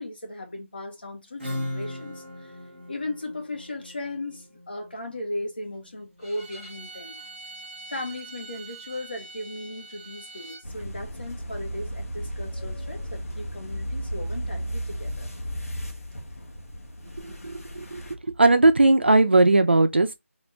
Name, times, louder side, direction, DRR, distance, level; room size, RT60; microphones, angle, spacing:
voice 1, 0.0-2.5 2.9-7.2 7.9-15.3, left 1 dB, 40° left, 1.1 m, -36 dB
Acoustic guitar / Strum, 1.4-6.8, left 1 dB, 5° left, 0.6 m, -38 dB
Bowed string instrument, 6.2-10.7, right 3 dB, 15° right, 1.1 m, -43 dB
sound 1, 10.6-18.1, equal, 75° left, 1.3 m, -34 dB
voice 2, 17.4-18.0 18.4-20.1, right 2 dB, 45° right, 0.6 m, -18 dB
4.1 x 2.5 x 3.2 m
figure-of-eight pair, 175°, 8 cm